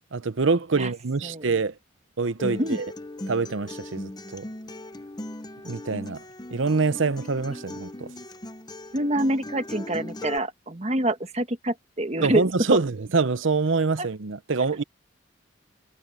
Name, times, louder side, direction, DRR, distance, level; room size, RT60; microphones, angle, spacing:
voice 1, 0.1-1.7 2.2-2.9 3.3-4.5 5.6-6.2 6.5-8.1 12.2-14.8, right 4 dB, 75° right, 0.8 m, -25 dB
Acoustic guitar, 2.4-10.4, left 1 dB, 20° left, 0.8 m, -38 dB
voice 2, 8.9-12.8 14.0-14.1, right 1 dB, 35° right, 1.4 m, -26 dB
head